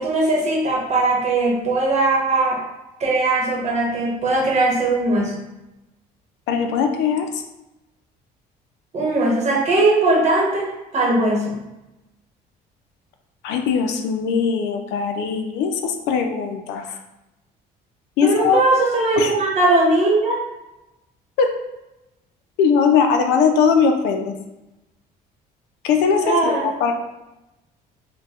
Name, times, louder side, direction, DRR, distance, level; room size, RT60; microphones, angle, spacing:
voice 1, 0.0-2.6 3.0-5.4 8.9-11.6 18.2-20.4 26.2-26.7, right 2 dB, 40° right, -2 dB, 1.0 m, -19 dB
voice 2, 6.5-7.4 13.4-17.0 18.2-18.6 19.2-19.3 21.4-21.6 22.6-24.3 25.8-26.9, left 6 dB, 85° left, 5 dB, 0.4 m, -20 dB
4.0 x 2.2 x 2.3 m, 0.96 s
cardioid pair, 110°, 17 cm